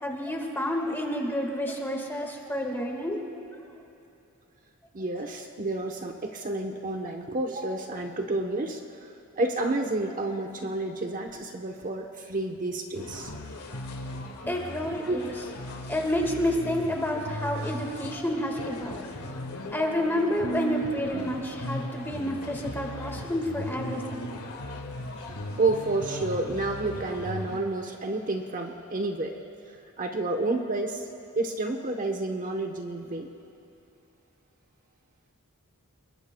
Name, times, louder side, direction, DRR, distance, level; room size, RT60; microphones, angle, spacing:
voice 1, 0.0-3.2 14.5-15.3 15.9-19.1 19.7-24.3, left 1 dB, 10° left, 1 dB, 1.7 m, -29 dB
voice 2, 4.9-13.3 15.0-15.3 25.2-29.4 30.0-31.1 31.3-33.3, right 2 dB, 40° right, 3 dB, 1.0 m, -30 dB
sound 1, 12.9-27.6, left 1 dB, 80° left, 1.7 m, -37 dB
28.0 x 22.0 x 2.3 m, 2.9 s
head